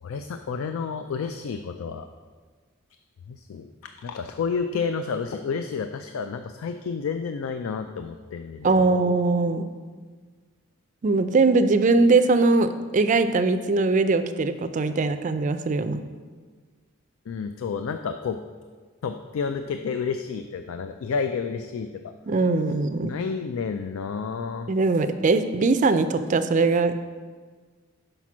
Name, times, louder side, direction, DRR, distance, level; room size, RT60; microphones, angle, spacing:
voice 1, 0.0-2.1 3.3-9.0 17.3-18.4 19.0-22.1 23.0-24.7, left 5 dB, 80° left, 8 dB, 0.4 m, -30 dB
voice 2, 8.6-9.8 11.0-16.0 22.3-23.1 24.7-26.9, right 3 dB, 35° right, 10 dB, 0.4 m, -21 dB
5.8 x 5.1 x 6.0 m, 1.5 s
head